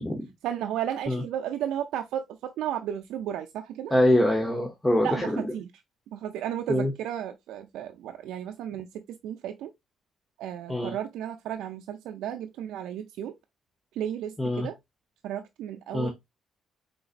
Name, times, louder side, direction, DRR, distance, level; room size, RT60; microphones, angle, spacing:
voice 1, 0.4-3.9 5.0-5.7 6.1-9.7 10.4-13.3 14.0-14.7 15.2-16.1, right 10 dB, 90° right, 0.4 m, -33 dB
voice 2, 3.9-5.5 6.7-6.9 10.7-10.9 14.4-14.7 15.9-16.1, left 1 dB, 10° left, 0.9 m, -24 dB
3.9 x 3.9 x 2.4 m
cardioid pair, 90°, 0 cm